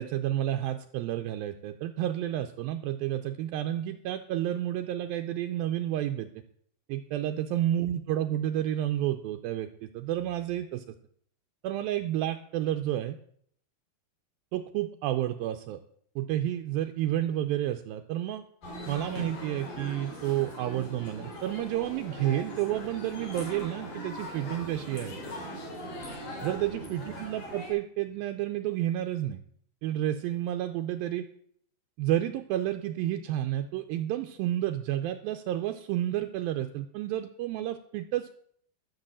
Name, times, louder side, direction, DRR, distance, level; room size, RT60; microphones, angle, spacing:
voice 1, 0.0-6.3 6.9-10.8 11.6-13.2 14.5-15.8 16.2-18.4 18.9-25.1 26.4-29.4 29.8-31.3 32.0-38.3, right 12 dB, 80° right, 7 dB, 2.2 m, -30 dB
sound 1, 18.6-27.7, equal, 65° left, 5.1 m, -40 dB
13.0 x 6.8 x 7.3 m, 0.63 s
omnidirectional pair, 4.5 m